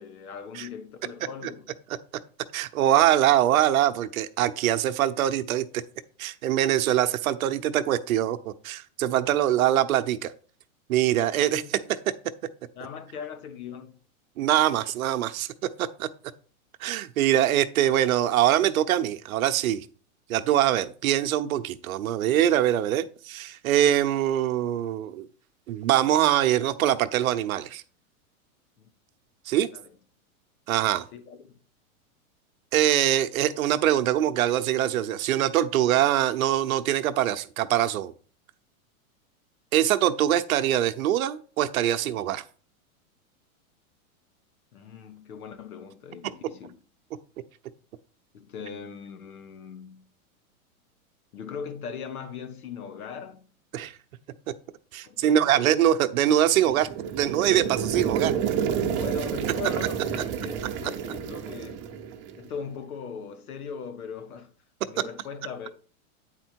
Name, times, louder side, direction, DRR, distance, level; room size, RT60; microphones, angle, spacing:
voice 1, 0.0-1.7 11.1-11.8 12.7-14.0 28.8-28.9 29.7-29.9 31.1-31.4 44.7-46.8 48.3-50.0 51.3-53.5 55.0-55.7 58.9-61.9 62.4-64.5 64.9-65.7, left 6 dB, 85° left, 1.6 m, -40 dB
voice 2, 2.5-5.8 6.2-10.3 10.9-11.8 14.4-15.5 15.8-16.1 16.8-19.9 20.3-25.3 25.7-27.8 29.5-29.7 30.7-31.0 32.7-38.1 39.7-42.4 53.7-53.9 54.9-58.3 65.0-65.1, right 12 dB, 75° right, 0.8 m, -23 dB
sound 1, 56.5-62.5, right 8 dB, 25° right, 0.7 m, -30 dB
9.0 x 4.4 x 4.6 m
hypercardioid pair, 135°, 42 cm